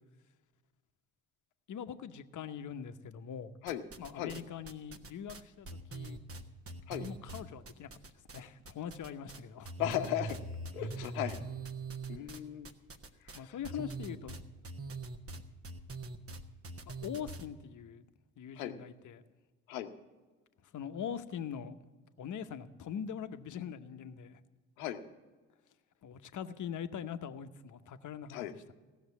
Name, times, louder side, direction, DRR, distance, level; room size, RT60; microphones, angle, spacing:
voice 1, 1.7-3.5 4.0-6.2 7.0-8.0 8.3-9.7 13.3-14.4 16.9-18.0 18.4-19.2 20.7-21.8 22.2-24.4 26.0-28.7, left 8 dB, 45° left, 10 dB, 0.9 m, -42 dB
sound 1, 3.7-4.4 4.7-8.4 8.6-9.4 9.6-17.5, right 3 dB, 35° right, 1.2 m, -43 dB
voice 2, 9.8-10.4 10.7-11.4 12.1-12.7 13.2-13.6 18.6-18.8 19.7-19.9 24.8-25.0 28.3-28.5, left 12 dB, 85° left, 8 dB, 0.9 m, -36 dB
15.5 x 6.6 x 8.2 m, 1.3 s
hypercardioid pair, 55°, 41 cm